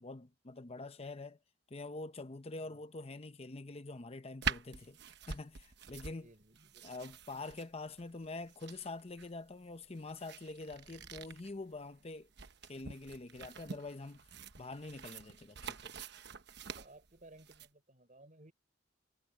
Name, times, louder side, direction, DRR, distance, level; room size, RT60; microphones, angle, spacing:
voice 1, 0.0-1.4 1.7-5.0 5.3-6.3 6.8-12.3 12.7-14.2 14.5-15.9, left 3 dB, 35° left, 0.8 m, -45 dB
sound 1, 4.4-17.7, right 6 dB, 65° right, 1.1 m, -46 dB
voice 2, 6.1-7.0 16.8-18.5, right 2 dB, 45° right, 5.8 m, -59 dB
head